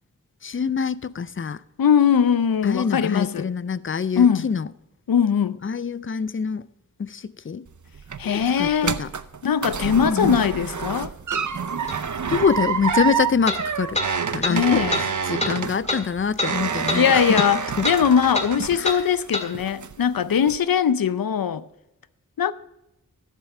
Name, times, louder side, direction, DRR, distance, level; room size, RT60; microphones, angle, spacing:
voice 1, 0.4-1.6 2.6-4.7 5.6-6.7 7.0-7.7 8.2-9.1 10.0-10.4 12.3-14.0 14.3-17.4 17.8-17.9 18.8-19.0, left 6 dB, 40° left, 0.4 m, -25 dB
voice 2, 1.8-3.5 4.2-4.5 5.1-5.6 8.2-9.0 9.4-11.1 14.5-15.0 16.9-21.6 22.4-22.5, left 7 dB, 85° left, 0.6 m, -20 dB
sound 1, 7.7-19.2 19.6-20.1 20.5-20.6, right 6 dB, 60° right, 0.6 m, -28 dB
sound 2, 11.9-12.0 13.5-13.6 14.0-14.1 14.4-14.6 14.9-15.1 15.4-15.5 15.9-16.0 16.4-16.5 16.9-17.0 17.4-17.5 17.8-18.0 18.3-18.5 18.8-19.0 19.3-19.5, left 2 dB, 20° left, 1.7 m, -25 dB
13.5 x 7.5 x 4.9 m
wide cardioid pair, 65°, 34 cm